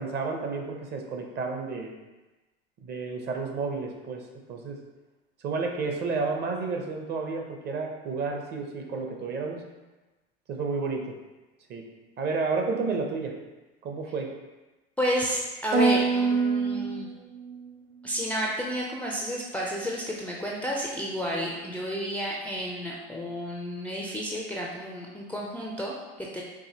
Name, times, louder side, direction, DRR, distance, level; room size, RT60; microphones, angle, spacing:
voice 1, 0.0-1.9 2.8-4.2 4.5-4.8 5.4-9.6 10.5-11.1 11.7-11.8 12.2-13.3 13.8-14.3, right 4 dB, 35° right, 2 dB, 0.7 m, -31 dB
voice 2, 15.0-17.1 18.0-26.4, equal, 5° left, -3 dB, 0.4 m, -31 dB
sound 1, 15.7-17.7, right 4 dB, 85° right, 0.9 m, -25 dB
4.7 x 2.6 x 2.8 m, 1.1 s
hypercardioid pair, 100°, 30 cm